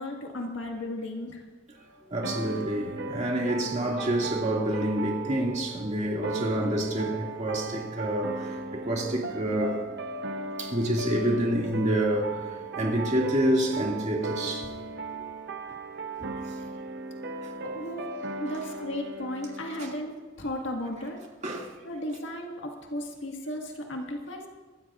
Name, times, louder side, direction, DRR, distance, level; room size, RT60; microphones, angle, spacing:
voice 1, 0.0-1.4 17.6-21.2 21.8-24.5, left 1 dB, 70° left, 1.8 m, -35 dB
voice 2, 2.1-9.8 10.6-14.7 15.1-15.2 16.2-16.3 19.8-19.9 21.4-21.7, right 1 dB, 40° right, 2.3 m, -28 dB
sound 1, 2.2-19.9, right 3 dB, 60° right, 0.8 m, -37 dB
24.0 x 13.0 x 2.5 m
head